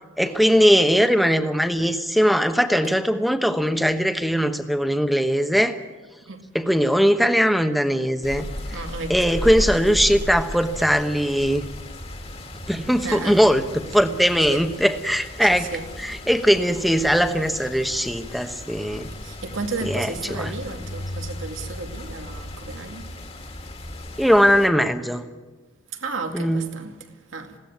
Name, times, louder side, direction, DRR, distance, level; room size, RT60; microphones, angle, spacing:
voice 1, 0.2-5.8 6.5-8.5 9.1-11.6 12.7-15.7 16.0-19.1 19.9-20.1 20.4-20.5 24.2-25.2 26.3-26.7, equal, ahead, 1.0 m, -20 dB
sound 1, 8.2-24.7, left 1 dB, 30° left, 1.9 m, -35 dB
voice 2, 8.7-9.4 13.0-13.4 14.5-14.7 15.4-15.9 19.2-23.1 25.9-27.5, right 3 dB, 80° right, 2.2 m, -33 dB
20.5 x 17.0 x 9.4 m
head